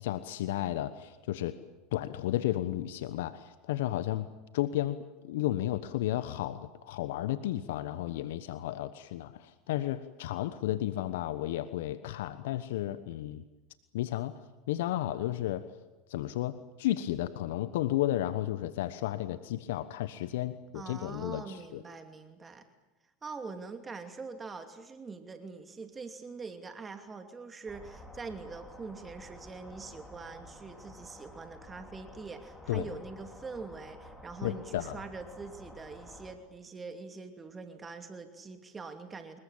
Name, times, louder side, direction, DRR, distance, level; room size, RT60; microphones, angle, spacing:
voice 1, 0.0-1.6 1.9-4.3 4.5-13.4 13.9-14.4 14.7-15.7 16.1-21.8 32.7-32.9 34.4-35.0, left 14 dB, 70° left, 13 dB, 1.1 m, -33 dB
voice 2, 20.7-22.6 23.2-39.4, right 4 dB, 20° right, 6 dB, 2.7 m, -44 dB
sound 1, 27.7-36.3, left 1 dB, 5° left, 5.2 m, -51 dB
26.5 x 21.5 x 8.9 m, 1.1 s
hypercardioid pair, 85°, 0 cm